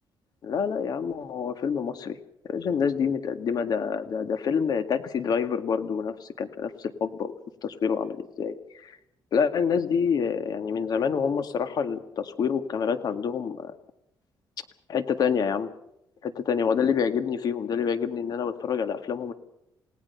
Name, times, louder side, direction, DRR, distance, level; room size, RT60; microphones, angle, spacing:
voice 1, 0.4-2.2 2.5-7.3 7.6-9.0 9.3-13.8 14.9-15.7 16.2-19.3, left 6 dB, 60° left, 10 dB, 1.9 m, -27 dB
29.0 x 18.0 x 5.7 m, 0.81 s
cardioid pair, 125°, 8 cm